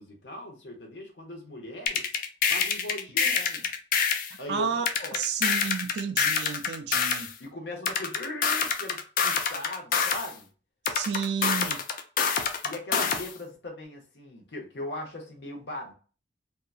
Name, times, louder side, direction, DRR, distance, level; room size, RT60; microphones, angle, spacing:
voice 1, 0.0-2.2 2.5-3.7 4.4-4.7 5.0-5.2 7.4-10.5 12.6-15.9, left 1 dB, 75° left, 0.9 m, -39 dB
sound 1, 1.9-4.3 4.9-7.3 7.9-10.3 10.8-13.3, left 6 dB, 50° left, 0.4 m, -26 dB
voice 2, 4.5-4.9 5.1-7.3 10.9-11.8, right 6 dB, 70° right, 0.3 m, -31 dB
2.7 x 2.3 x 2.4 m
head